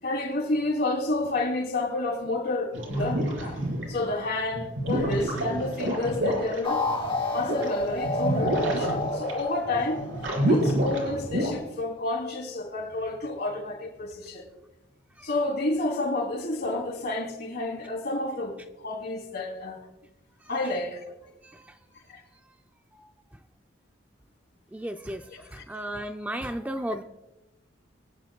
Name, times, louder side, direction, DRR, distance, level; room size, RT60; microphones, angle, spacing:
voice 1, 0.0-3.6 3.9-6.8 7.3-10.0 10.4-14.4 15.2-19.8 20.5-21.0 22.1-22.2 25.3-25.6, left 2 dB, 55° left, 3.0 m, -30 dB
sound 1, 2.7-4.1 4.5-11.5, right 1 dB, 80° right, 4.2 m, -28 dB
sound 2, 6.6-11.1, left 1 dB, 30° left, 2.2 m, -30 dB
voice 2, 24.7-25.2 25.7-27.0, right 1 dB, 10° right, 0.4 m, -33 dB
23.5 x 10.0 x 2.2 m
head